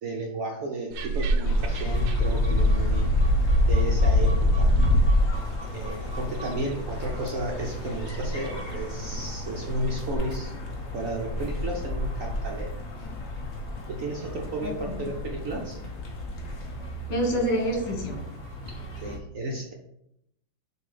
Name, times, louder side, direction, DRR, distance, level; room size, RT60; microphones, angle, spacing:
voice 1, 0.0-3.1 3.7-4.7 5.7-10.5 10.9-12.7 13.9-15.8 19.0-19.7, right 1 dB, 60° right, 0 dB, 0.9 m, -33 dB
sound 1, 0.9-10.2, right 2 dB, 85° right, 1.4 m, -32 dB
sound 2, 1.4-19.2, left 1 dB, 45° left, 0.9 m, -27 dB
voice 2, 14.6-15.0 17.1-18.2, equal, 75° left, -1 dB, 2.3 m, -27 dB
7.0 x 2.7 x 5.0 m, 0.79 s
omnidirectional pair, 2.1 m